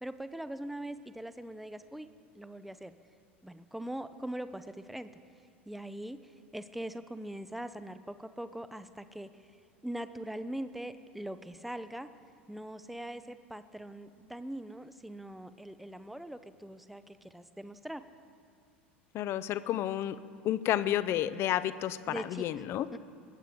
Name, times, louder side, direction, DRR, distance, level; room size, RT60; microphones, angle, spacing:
voice 1, 0.0-2.1 2.4-2.9 3.4-5.1 5.7-6.2 6.5-9.3 9.8-12.1 12.5-18.0 22.1-22.5 22.9-23.0, right 1 dB, ahead, 12 dB, 0.6 m, -41 dB
voice 2, 19.1-20.2 20.4-22.9, left 12 dB, 40° left, 15 dB, 0.6 m, -31 dB
20.5 x 8.9 x 5.0 m, 2.4 s
figure-of-eight pair, 80°, 6 cm